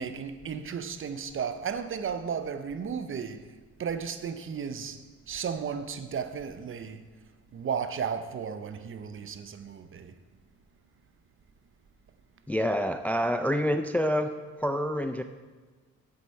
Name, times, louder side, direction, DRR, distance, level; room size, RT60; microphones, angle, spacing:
voice 1, 0.0-3.4 3.8-5.0 5.3-7.0 7.5-10.1, right 6 dB, 45° right, 0.7 m, -34 dB
voice 2, 12.5-14.3 14.6-15.2, equal, 5° left, 0.3 m, -27 dB
8.5 x 8.0 x 4.5 m
cardioid pair, 90°, 30 cm